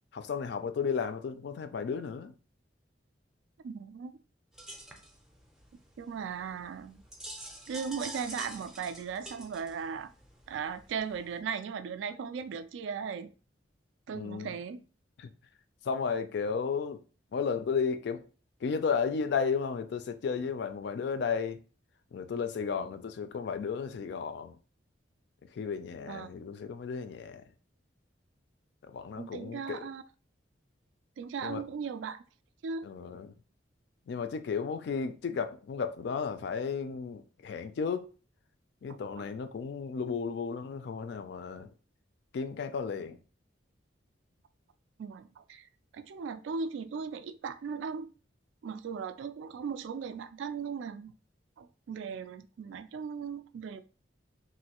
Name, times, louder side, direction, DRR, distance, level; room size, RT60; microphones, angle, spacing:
voice 1, 0.1-2.3 14.1-14.6 15.2-15.3 15.8-17.0 17.3-18.3 18.6-21.6 22.1-24.6 25.4-27.5 28.8-29.9 31.4-31.6 32.8-33.3 34.1-38.1 38.8-41.7 42.3-43.2, left 5 dB, 60° left, 0.3 m, -33 dB
voice 2, 3.6-4.1 6.0-7.0 7.7-10.1 10.5-13.3 14.1-14.8 26.1-26.3 29.2-30.0 31.2-32.2 32.6-32.9 38.9-39.3 45.0-45.7 45.9-48.1 48.6-51.1 51.6-53.8, right 6 dB, 75° right, 0.3 m, -37 dB
sound 1, 4.5-11.4, right 1 dB, 5° right, 0.5 m, -47 dB
3.1 x 2.5 x 2.9 m
head